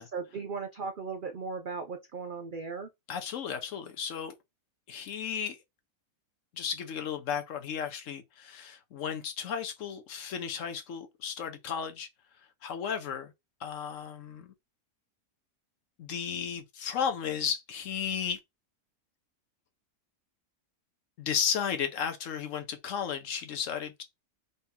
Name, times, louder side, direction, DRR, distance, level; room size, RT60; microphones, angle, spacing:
voice 1, 0.0-2.9, right 4 dB, 80° right, 0.4 m, -37 dB
voice 2, 3.1-4.3 4.9-5.6 6.5-12.1 12.6-13.3 13.6-14.5 16.0-18.4 21.2-24.0, left 7 dB, 65° left, 1.0 m, -34 dB
3.9 x 2.8 x 3.5 m
omnidirectional pair, 1.6 m